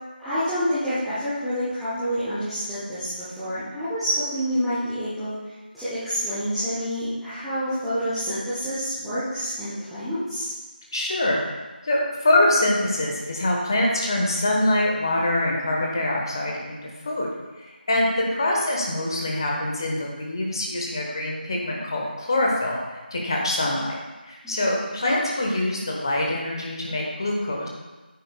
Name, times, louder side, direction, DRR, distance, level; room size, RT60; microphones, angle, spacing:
voice 1, 0.2-10.5 18.2-18.3 24.4-25.0, equal, ahead, -20 dB, 0.6 m, -28 dB
voice 2, 10.9-11.4 11.8-17.3 17.6-22.8 23.1-24.0 24.3-27.7, left 1 dB, 25° left, -2 dB, 1.1 m, -24 dB
9.7 x 7.8 x 2.2 m, 1.2 s
figure-of-eight pair, 170°, 6 cm